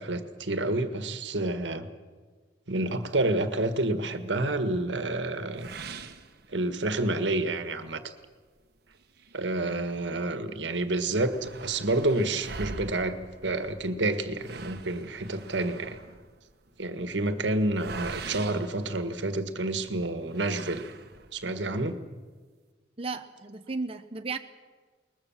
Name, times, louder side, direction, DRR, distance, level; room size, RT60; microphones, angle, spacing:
voice 1, 0.0-1.9 2.7-5.7 6.5-8.1 9.3-13.2 13.4-16.0 16.8-20.9 21.3-22.0, right 2 dB, 85° right, 9 dB, 1.7 m, -29 dB
sound 1, 5.6-7.0 7.5-7.6 8.0-8.1 8.9-10.2 10.6-10.7 10.9-19.6 20.3-21.5, right 4 dB, 60° right, 1.4 m, -43 dB
voice 2, 23.0-24.4, right 4 dB, 30° right, 6 dB, 0.8 m, -34 dB
22.0 x 20.5 x 7.3 m, 1.5 s
head